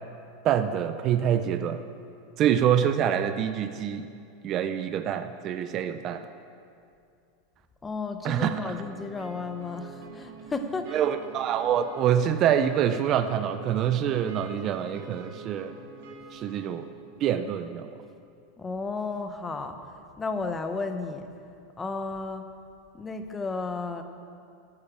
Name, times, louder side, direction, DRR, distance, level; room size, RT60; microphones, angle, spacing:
voice 1, 0.4-1.8 2.4-4.0 4.4-6.3 8.2-8.7 10.9-15.7 16.3-16.9 17.2-17.9, right 9 dB, 30° right, 9 dB, 0.5 m, -26 dB
voice 2, 7.8-11.0 18.6-19.8 20.2-21.3 21.8-22.5 22.9-24.0, left 3 dB, 10° left, 7 dB, 0.7 m, -33 dB
sound 1, 8.3-16.9, right 3 dB, 70° right, 2.6 m, -45 dB
13.5 x 9.8 x 5.0 m, 2.4 s
supercardioid pair, 160°, 0 cm